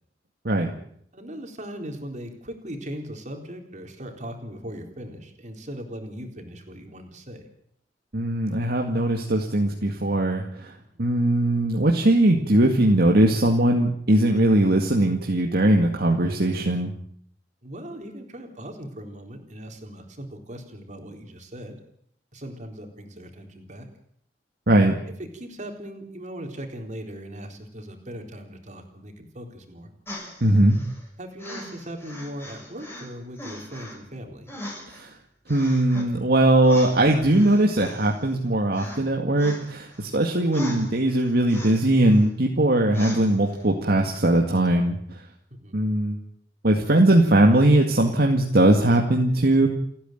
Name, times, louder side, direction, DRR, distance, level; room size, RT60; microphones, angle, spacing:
voice 1, 1.1-7.5 10.9-11.0 17.6-21.8 22.3-23.9 25.3-29.9 31.2-34.5 45.6-45.8, equal, 45° right, 4 dB, 4.1 m, -39 dB
voice 2, 8.1-10.7 11.0-16.9 24.7-25.0 30.4-30.8 34.9-35.1 35.5-45.2 45.7-46.2 46.6-49.7, right 1 dB, 60° right, 1 dB, 2.2 m, -20 dB
sound 1, 30.1-31.0 31.4-33.1 33.4-34.0 34.5-35.1 35.5-36.1 36.6-38.4 38.7-39.0 39.4-40.1 40.5-42.3 42.9-43.6 44.2-44.3, equal, 15° left, 6.8 m, -39 dB
29.5 x 10.0 x 9.3 m, 0.69 s
head